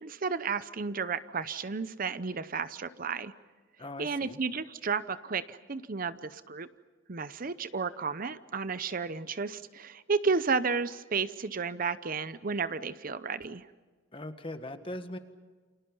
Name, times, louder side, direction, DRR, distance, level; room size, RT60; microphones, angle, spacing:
voice 1, 0.0-3.3 4.0-6.7 7.1-13.7, right 5 dB, 45° right, 13 dB, 0.7 m, -32 dB
voice 2, 3.8-4.4 14.1-15.2, left 1 dB, 25° left, 8 dB, 1.6 m, -40 dB
29.5 x 27.0 x 5.5 m, 1.4 s
head